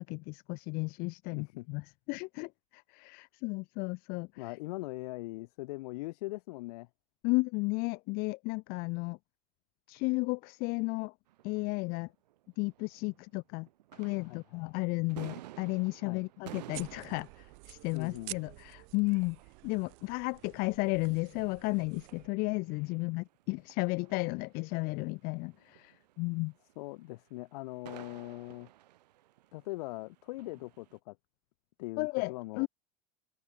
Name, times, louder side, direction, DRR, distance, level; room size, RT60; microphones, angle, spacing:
voice 1, 0.0-1.8 2.1-4.3 7.2-9.2 9.9-11.1 11.4-12.1 12.6-13.7 14.0-19.4 19.6-26.5 32.0-32.7, left 27 dB, 45° left, 0.5 m, -33 dB
voice 2, 1.3-1.7 4.4-6.9 14.2-14.6 16.0-16.3 17.9-18.4 26.8-28.7 29.5-31.2 31.8-32.7, left 21 dB, 70° left, 1.0 m, -41 dB
sound 1, 11.3-13.4 13.7-31.0, right 15 dB, 85° right, 1.9 m, -54 dB
sound 2, 16.7-22.3, right 40 dB or more, 55° right, 1.0 m, -50 dB
supercardioid pair, 130°, 21 cm